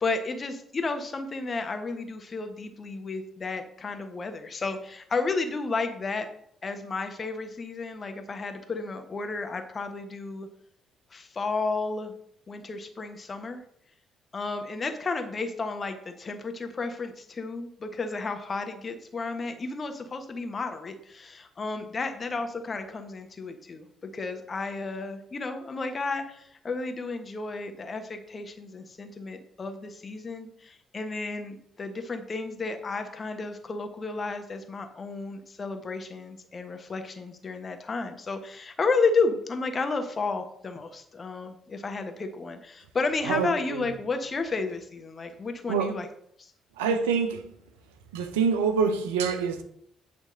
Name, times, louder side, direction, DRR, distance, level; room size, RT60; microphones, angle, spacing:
voice 1, 0.0-6.3 6.6-10.5 11.1-12.1 12.5-13.6 14.3-46.1 46.4-46.5, left 3 dB, 40° left, 1.3 m, -32 dB
voice 2, 43.3-43.8 45.7-46.0 46.8-47.5 48.1-49.6, right 6 dB, 80° right, 0.7 m, -26 dB
9.2 x 3.5 x 6.4 m
hypercardioid pair, 45°, 0 cm